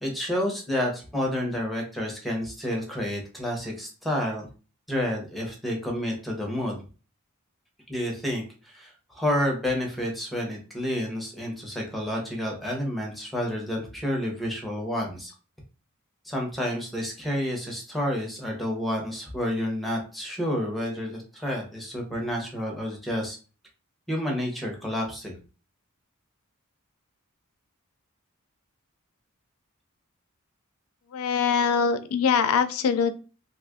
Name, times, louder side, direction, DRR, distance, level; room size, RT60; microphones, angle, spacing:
voice 1, 0.0-4.5 4.9-6.8 7.9-15.3 16.2-23.4 24.1-25.4, equal, ahead, 0 dB, 0.7 m, -30 dB
voice 2, 31.1-33.1, left 6 dB, 75° left, 10 dB, 0.4 m, -23 dB
2.9 x 2.4 x 3.6 m, 0.36 s
head